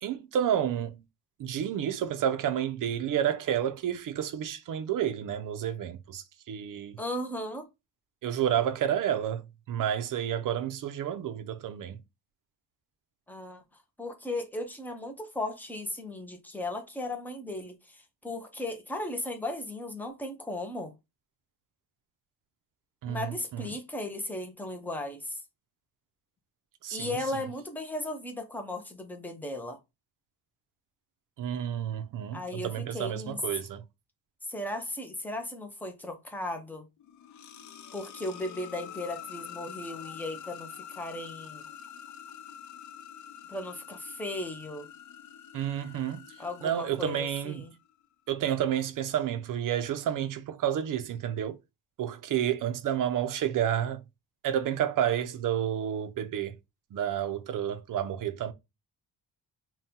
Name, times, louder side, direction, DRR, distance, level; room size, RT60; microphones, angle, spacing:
voice 1, 0.0-1.0 1.4-7.0 8.2-12.0 23.0-23.7 26.8-27.1 31.4-33.8 45.5-46.2 46.6-47.6 48.3-51.6 52.0-54.0 54.4-56.6 56.9-58.5, right 10 dB, 55° right, 0.5 m, -30 dB
voice 2, 7.0-7.7 13.3-20.9 23.1-25.4 26.9-29.8 32.3-33.4 34.4-36.9 37.9-41.7 43.5-44.9 46.4-47.7, left 1 dB, 5° left, 0.6 m, -36 dB
sound 1, 37.0-47.7, left 9 dB, 50° left, 0.5 m, -46 dB
4.1 x 2.2 x 3.6 m
cardioid pair, 170°, 40 cm